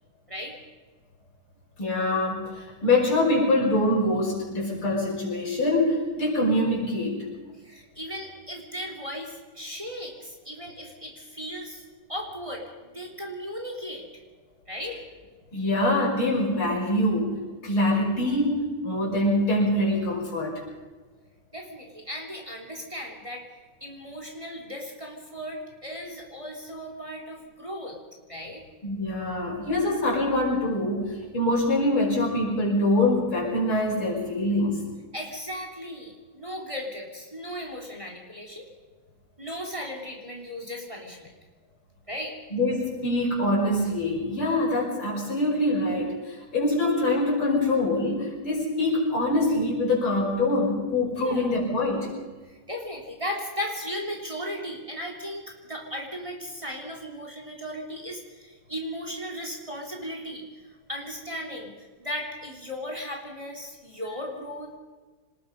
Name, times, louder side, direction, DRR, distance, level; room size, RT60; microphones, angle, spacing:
voice 1, 1.8-7.2 15.5-20.6 28.8-34.9 42.5-52.1, left 1 dB, 80° left, -2 dB, 6.5 m, -24 dB
voice 2, 7.6-11.8 12.1-14.0 14.7-15.0 21.5-23.5 23.8-28.0 28.3-28.6 35.1-38.7 39.4-41.3 42.1-42.4 51.2-51.5 52.5-60.4 60.9-64.8, equal, 15° right, 1 dB, 3.3 m, -36 dB
26.0 x 20.0 x 5.4 m, 1.3 s
omnidirectional pair, 2.3 m